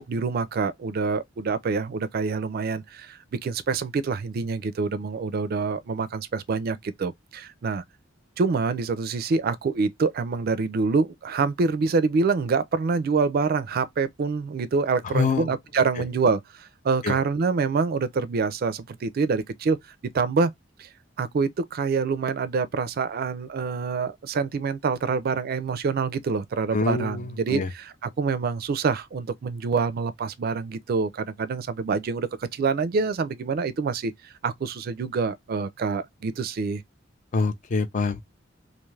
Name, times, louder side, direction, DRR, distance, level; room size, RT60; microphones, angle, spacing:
voice 1, 0.0-7.8 8.4-19.8 20.1-20.5 20.8-20.9 21.2-36.8, right 4 dB, 50° right, 0.4 m, -26 dB
voice 2, 15.1-15.5 17.0-17.2 26.7-27.7 37.3-38.2, left 4 dB, 40° left, 0.4 m, -25 dB
2.5 x 2.3 x 3.1 m
head